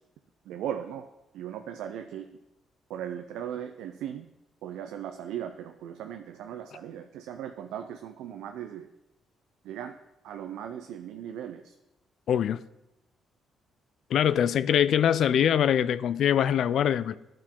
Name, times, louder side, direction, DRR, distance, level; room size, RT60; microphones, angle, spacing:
voice 1, 0.5-1.1 1.3-2.3 2.9-4.3 4.6-8.9 9.6-10.0 10.2-11.8, right 9 dB, 90° right, 6 dB, 0.4 m, -38 dB
voice 2, 12.3-12.6 14.1-17.2, left 9 dB, 70° left, 16 dB, 0.3 m, -23 dB
12.0 x 4.4 x 3.7 m, 0.91 s
cardioid pair, 90°, 0 cm